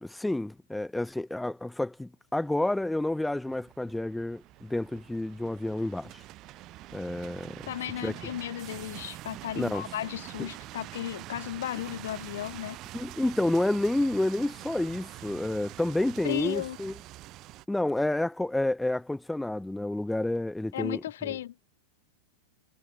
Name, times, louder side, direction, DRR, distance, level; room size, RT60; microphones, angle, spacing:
voice 1, 0.0-6.2 6.9-7.6 8.0-8.1 9.6-9.9 10.4-10.5 12.9-17.0 17.7-21.4, left 1 dB, 5° left, 0.3 m, -29 dB
sound 1, 2.4-17.7, right 17 dB, 35° right, 4.1 m, -45 dB
voice 2, 7.7-12.8 16.2-16.8 20.7-21.5, left 12 dB, 60° left, 2.3 m, -35 dB
figure-of-eight pair, 90°, 0 cm